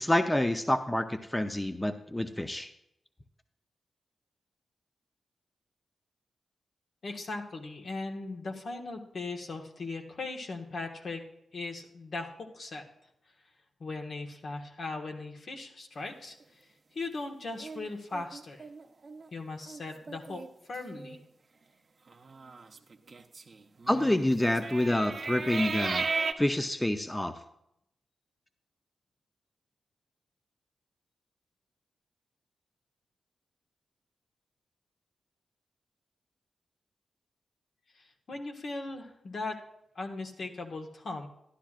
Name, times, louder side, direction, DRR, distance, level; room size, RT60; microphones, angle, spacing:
voice 1, 0.0-2.7 23.9-26.1 26.4-27.4, left 1 dB, 15° left, 8 dB, 0.7 m, -28 dB
voice 2, 7.0-11.2 11.5-12.8 13.8-16.6 16.9-18.6 19.3-21.2 37.9-39.6 39.9-41.3, left 3 dB, 65° left, 3 dB, 1.4 m, -38 dB
sound 1, 17.6-19.3 19.7-19.8 20.1-20.5 20.9-21.2 22.1-26.3, right 4 dB, 50° right, 0.7 m, -36 dB
11.5 x 11.5 x 2.5 m, 0.79 s
cardioid pair, 50°, 0 cm